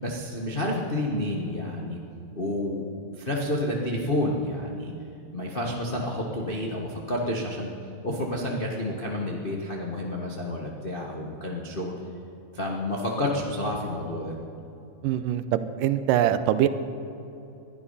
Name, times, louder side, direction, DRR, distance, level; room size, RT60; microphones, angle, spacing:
voice 1, 0.0-2.0 2.3-2.9 3.2-4.9 5.3-7.7 8.0-11.9 12.5-14.3, left 1 dB, 90° left, -1 dB, 0.4 m, -29 dB
voice 2, 15.0-16.7, right 11 dB, 85° right, 12 dB, 2.3 m, -23 dB
21.0 x 12.0 x 5.7 m, 2.8 s
omnidirectional pair, 3.9 m